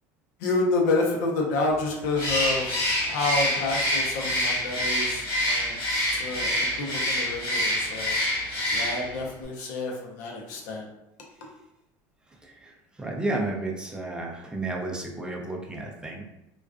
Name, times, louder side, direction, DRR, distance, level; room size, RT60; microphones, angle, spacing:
voice 1, 0.4-2.7 3.0-5.8 6.1-8.2 8.7-10.9, left 3 dB, 85° left, -1 dB, 0.6 m, -28 dB
Bird, 2.1-9.2, equal, 45° left, 1.2 m, -26 dB
voice 2, 13.0-16.2, right 2 dB, 10° right, 0 dB, 0.4 m, -32 dB
2.4 x 2.3 x 2.3 m, 0.88 s
supercardioid pair, 130°, 9 cm